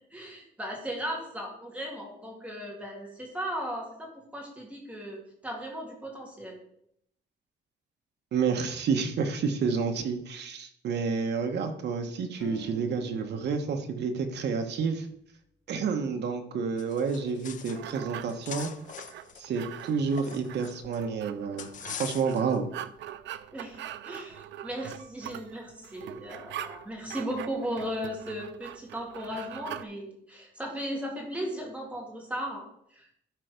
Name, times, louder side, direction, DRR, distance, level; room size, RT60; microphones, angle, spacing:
voice 1, 0.1-6.6 23.5-32.6 32.9-33.1, equal, 5° right, -1 dB, 2.2 m, -36 dB
voice 2, 8.3-15.1 15.7-18.7 19.4-22.7, right 5 dB, 65° right, 5 dB, 1.3 m, -29 dB
sound 1, 12.4-15.6, left 3 dB, 75° left, 2.8 m, -50 dB
sound 2, 16.8-17.9 18.2-21.0 21.6-22.6, left 9 dB, 45° left, 0.5 m, -42 dB
sound 3, 17.2-29.8, right 11 dB, 80° right, 0.5 m, -43 dB
12.5 x 4.6 x 5.2 m, 0.72 s
cardioid pair, 165°, 19 cm